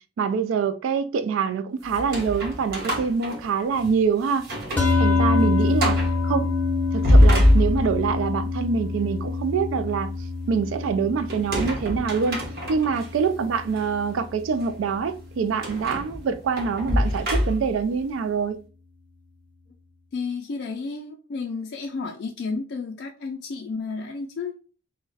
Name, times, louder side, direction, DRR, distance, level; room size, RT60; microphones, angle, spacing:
voice 1, 0.2-4.5 5.0-6.0 6.2-6.5 6.9-10.1 10.5-12.4 12.7-18.6, right 5 dB, 80° right, 0.3 m, -25 dB
sound 1, 1.9-4.0 4.4-5.0 5.3-5.4 5.8-6.2 6.8-8.1 11.3-13.1 13.7-13.9 15.6-17.9, left 1 dB, 50° right, 0.9 m, -23 dB
sound 2, 4.8-15.2, left 4 dB, 10° left, 0.6 m, -27 dB
voice 2, 5.4-5.8 20.1-24.7, left 4 dB, 55° left, 0.3 m, -32 dB
2.4 x 2.1 x 3.8 m
head